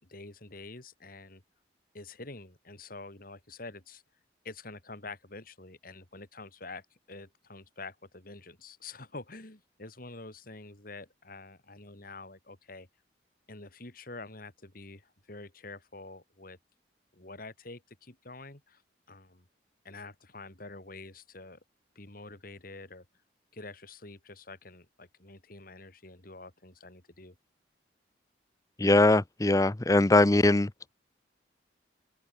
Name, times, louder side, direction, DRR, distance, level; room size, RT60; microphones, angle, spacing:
voice 1, 0.0-1.4 1.9-4.0 4.4-12.9 13.5-16.6 17.1-18.8 19.1-19.4 19.8-21.6 21.9-23.0 23.5-27.3, left 3 dB, 50° left, 3.3 m, -47 dB
voice 2, 28.8-30.7, left 2 dB, 20° left, 0.6 m, -21 dB
head